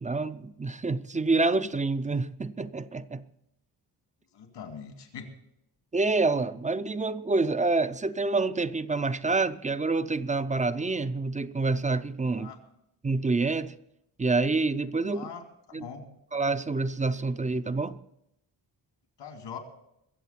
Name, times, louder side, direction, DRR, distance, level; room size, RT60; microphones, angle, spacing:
voice 1, 0.0-3.2 5.9-12.5 13.0-13.7 14.2-15.2 15.7-15.9 16.3-18.0, right 3 dB, 20° right, 0.5 m, -27 dB
voice 2, 4.3-5.3 12.3-12.6 15.1-15.4 15.7-16.0 19.2-19.6, left 6 dB, 85° left, 2.8 m, -41 dB
22.5 x 7.6 x 5.9 m
wide cardioid pair, 125°, 41 cm